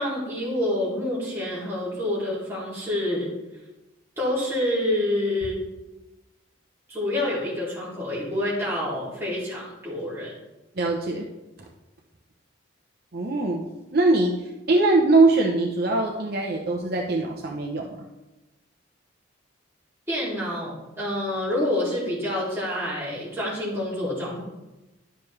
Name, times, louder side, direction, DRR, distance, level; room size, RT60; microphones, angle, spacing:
voice 1, 0.0-3.3 4.2-5.6 6.9-10.3 20.1-24.4, left 1 dB, 10° right, -8 dB, 2.7 m, -27 dB
voice 2, 10.8-11.3 13.1-17.9, right 2 dB, 50° right, 0 dB, 0.7 m, -22 dB
11.0 x 6.7 x 3.2 m, 1.0 s
head